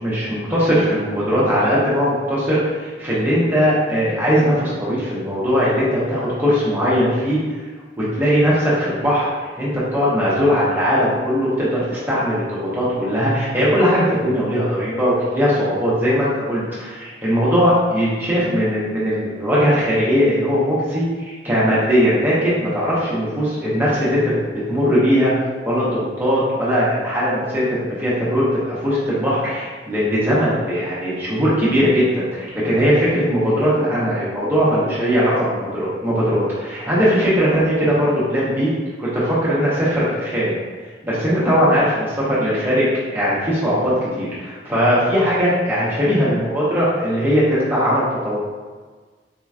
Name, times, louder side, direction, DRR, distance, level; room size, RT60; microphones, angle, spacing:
voice 1, 0.0-7.4 8.0-9.3 9.6-12.5 12.7-24.4 24.7-25.3 25.6-27.7 28.0-38.7 39.0-40.5 41.0-42.9 43.1-48.4, equal, 10° right, -9 dB, 1.0 m, -19 dB
4.2 x 3.0 x 2.4 m, 1.4 s
head